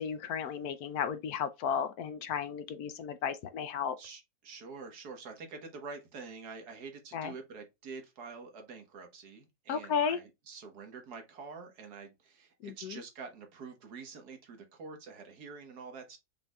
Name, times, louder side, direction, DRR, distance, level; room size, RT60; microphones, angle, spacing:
voice 1, 0.0-4.0 7.1-7.3 9.7-10.2 12.6-13.0, left 7 dB, 80° left, 1.1 m, -34 dB
voice 2, 4.0-16.2, right 4 dB, 85° right, 1.7 m, -47 dB
5.5 x 4.0 x 2.3 m
omnidirectional pair, 1.6 m